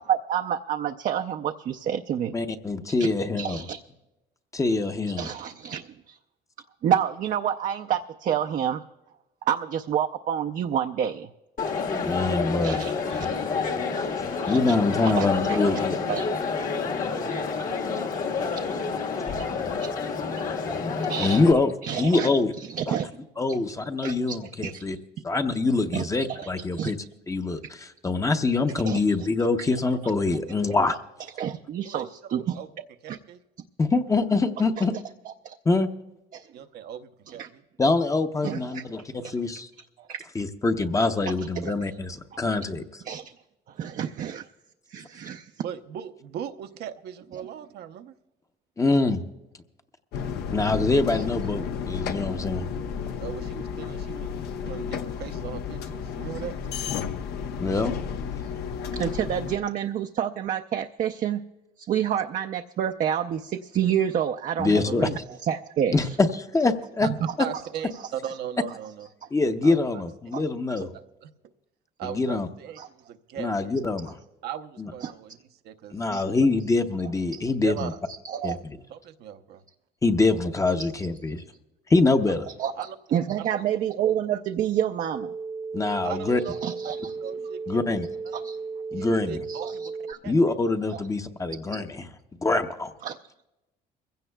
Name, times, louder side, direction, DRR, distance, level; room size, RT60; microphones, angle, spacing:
voice 1, 0.0-2.3 2.9-3.1 3.4-3.8 5.2-6.2 6.8-8.8 9.4-11.3 12.6-13.3 14.4-14.8 15.2-16.3 21.1-21.4 21.8-22.3 22.7-23.2 23.5-23.6 24.0-24.4 24.6-24.9 25.9-26.9 28.9-29.3 30.9-31.0 31.4-32.6 33.1-33.2 34.8-34.9 35.3-35.6 36.3-36.5 37.4-37.5 38.4-39.4 40.0-40.2 41.6-41.9 43.1-43.3 43.7-44.5 44.9-45.5 58.9-61.4 61.8-65.1 65.5-66.2 67.0-67.3 69.2-69.3 70.3-70.4 72.8-72.9 75.0-75.1 76.1-76.2 77.3-77.5 78.2-78.6 82.6-85.3 86.6-87.1 88.3-88.6 89.5-90.2 90.9-91.0 91.7-91.8 93.0-93.2, right 9 dB, 50° right, 5 dB, 0.5 m, -29 dB
voice 2, 2.3-3.7 4.5-5.3 12.0-12.8 14.5-16.0 21.2-22.5 22.9-23.0 23.4-25.0 25.2-27.0 27.3-31.0 33.8-34.9 35.6-35.9 37.8-39.7 40.3-42.8 48.8-49.2 50.5-52.7 57.6-58.0 64.6-65.1 65.9-67.1 69.3-70.9 72.1-72.5 73.4-74.2 74.8-74.9 75.9-77.9 78.4-78.6 80.0-81.4 81.9-82.4 85.7-86.4 87.7-88.1 88.9-89.4 90.2-92.0 92.4-92.9, left 3 dB, 20° left, 7 dB, 0.7 m, -24 dB
Crowd, 11.6-21.5, left 5 dB, 55° left, 1.5 m, -28 dB
voice 3, 31.8-32.3 32.5-32.7 33.0-33.4 36.5-37.6 45.6-48.1 53.2-54.3 54.7-56.5 67.0-67.1 67.4-69.1 69.6-70.0 70.8-71.3 72.0-73.8 74.4-76.2 77.6-78.0 78.9-79.6 82.8-83.0 83.5-83.6 86.0-87.8 88.2-88.4 88.9-90.0 90.2-90.5, right 9 dB, 75° right, 7 dB, 0.8 m, -38 dB
sound 1, 50.1-59.6, left 7 dB, 75° left, 0.9 m, -32 dB
sound 2, 85.1-90.1, right 4 dB, 20° right, 0.7 m, -35 dB
22.5 x 16.0 x 2.3 m, 0.99 s
cardioid pair, 110°, 17 cm